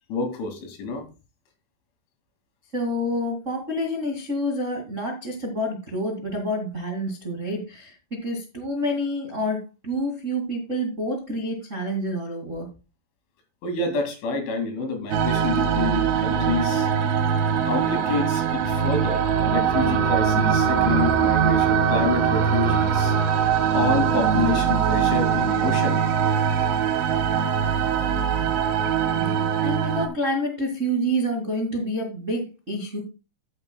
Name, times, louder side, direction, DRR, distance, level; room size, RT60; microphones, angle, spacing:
voice 1, 0.1-1.1 13.6-16.9 17.6-23.2 23.7-26.0, left 3 dB, 80° left, 4 dB, 4.8 m, -28 dB
voice 2, 2.7-12.7 29.1-33.0, equal, 45° right, 0 dB, 0.9 m, -28 dB
sound 1, 15.1-30.1, right 7 dB, 70° right, 1.8 m, -22 dB
14.0 x 8.7 x 2.3 m, 0.30 s
omnidirectional pair, 5.3 m